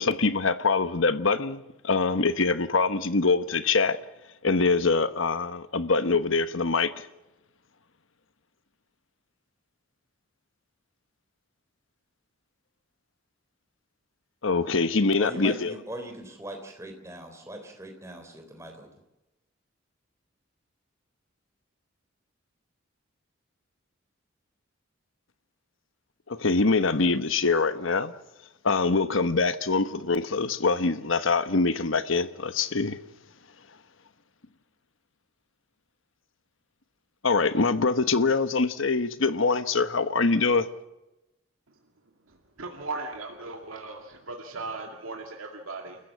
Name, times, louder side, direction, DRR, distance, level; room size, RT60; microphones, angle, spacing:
voice 1, 0.0-4.0 4.4-7.1 14.4-15.7 26.3-28.1 28.6-33.0 37.2-40.7, left 4 dB, 75° left, 1.2 m, -24 dB
voice 2, 15.2-18.9, right 1 dB, 15° right, 3.6 m, -41 dB
voice 3, 42.3-46.0, right 3 dB, 85° right, 2.3 m, -37 dB
29.5 x 14.5 x 7.3 m
head